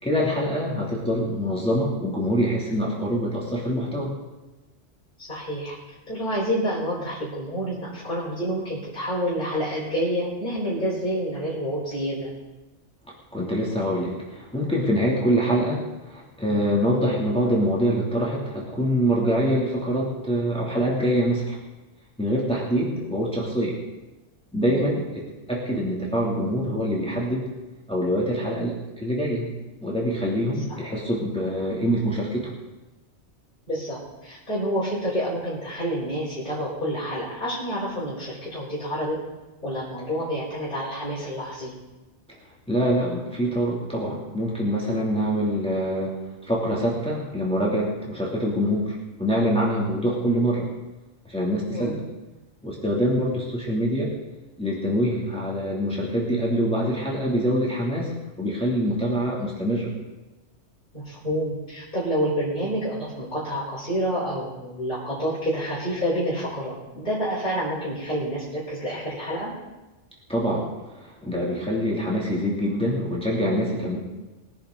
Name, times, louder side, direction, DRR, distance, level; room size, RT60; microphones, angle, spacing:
voice 1, 0.0-4.1 13.3-21.6 22.2-23.7 24.5-25.0 25.5-27.5 27.9-29.5 29.8-32.5 42.7-46.2 46.5-50.7 51.2-52.0 52.6-54.1 54.6-58.1 58.4-59.9 70.3-74.0, equal, 5° left, -5 dB, 2.9 m, -25 dB
voice 2, 5.3-5.7 6.1-12.3 24.7-24.9 30.7-30.8 33.7-39.2 39.6-41.7 51.7-51.9 60.9-69.5, equal, 45° left, -8 dB, 4.5 m, -28 dB
21.5 x 10.5 x 4.0 m, 1.1 s
omnidirectional pair, 1.2 m